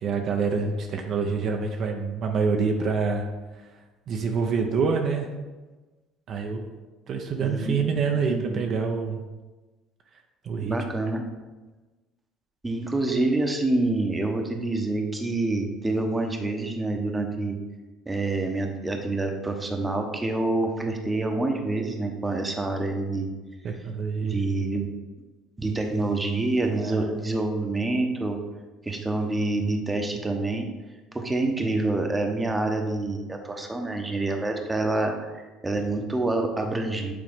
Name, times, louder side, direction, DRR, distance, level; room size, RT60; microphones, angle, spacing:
voice 1, 0.0-3.2 4.1-5.3 6.3-6.6 7.1-9.2 10.4-10.8 23.6-24.4 26.7-27.1, right 5 dB, 55° right, 3 dB, 0.7 m, -26 dB
voice 2, 7.4-7.9 8.3-8.7 10.6-11.2 12.6-17.6 18.1-23.3 24.2-24.9 25.6-28.4 28.8-30.7 31.1-37.1, right 2 dB, 15° right, 3 dB, 0.9 m, -27 dB
7.7 x 3.7 x 3.6 m, 1.2 s
supercardioid pair, 80°, 0 cm